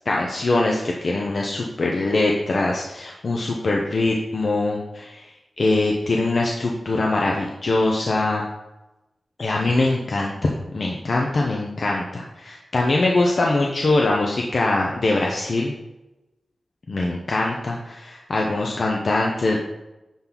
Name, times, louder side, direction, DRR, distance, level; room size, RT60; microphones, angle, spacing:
voice 1, 0.0-8.4 9.4-10.3 10.7-15.7 16.9-19.6, left 2 dB, 55° left, -1 dB, 0.8 m, -22 dB
9.4 x 4.5 x 4.0 m, 0.98 s
wide cardioid pair, 120°, 0 cm